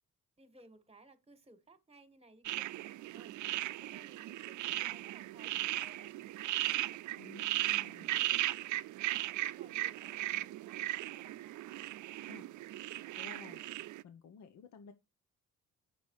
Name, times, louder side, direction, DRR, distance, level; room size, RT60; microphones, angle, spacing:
voice 1, 0.4-2.7 3.1-3.4 3.8-6.1 7.0-7.3 8.1-8.5 9.4-11.6, right 2 dB, 20° right, 1.6 m, -61 dB
sound 1, 2.4-14.0, right 16 dB, 75° right, 0.5 m, -37 dB
voice 2, 7.2-8.1 12.3-12.5 13.2-13.6 14.0-14.9, left 5 dB, 65° left, 0.9 m, -53 dB
8.4 x 6.0 x 4.7 m
cardioid pair, 90°, 30 cm